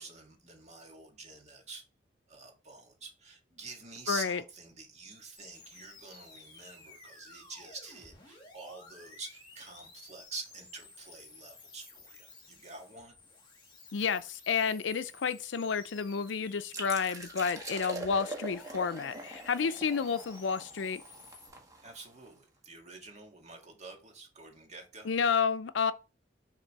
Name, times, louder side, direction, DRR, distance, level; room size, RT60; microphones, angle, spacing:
voice 1, 0.0-1.8 2.3-13.2 21.8-25.1, right 4 dB, 40° right, 1.8 m, -47 dB
voice 2, 4.1-4.4 13.9-21.0 25.0-25.9, left 6 dB, 80° left, 0.5 m, -30 dB
sound 1, 5.3-21.5, left 3 dB, 25° left, 2.2 m, -54 dB
sound 2, 16.7-22.3, right 2 dB, 20° right, 1.3 m, -43 dB
6.6 x 3.7 x 4.6 m
head